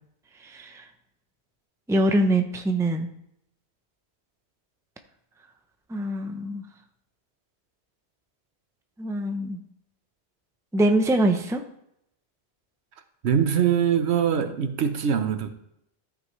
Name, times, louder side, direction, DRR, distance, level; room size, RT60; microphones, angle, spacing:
voice 1, 0.4-0.9 1.9-3.1 5.9-6.6 9.0-9.6 10.7-11.6, right 1 dB, 5° right, 6 dB, 0.5 m, -24 dB
voice 2, 13.2-15.5, right 8 dB, 80° right, 8 dB, 1.1 m, -23 dB
13.5 x 5.2 x 3.2 m, 0.77 s
omnidirectional pair, 1.1 m